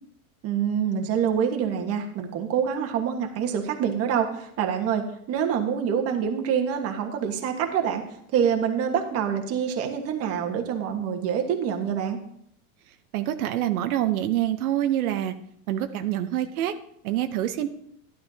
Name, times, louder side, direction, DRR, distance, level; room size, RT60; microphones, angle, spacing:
voice 1, 0.4-8.0 8.3-12.2, right 8 dB, 35° right, 4 dB, 1.4 m, -26 dB
voice 2, 13.1-15.3 15.7-16.7 17.0-17.7, right 12 dB, 85° right, 7 dB, 0.9 m, -26 dB
12.0 x 12.0 x 2.8 m, 0.70 s
supercardioid pair, 150°, 42 cm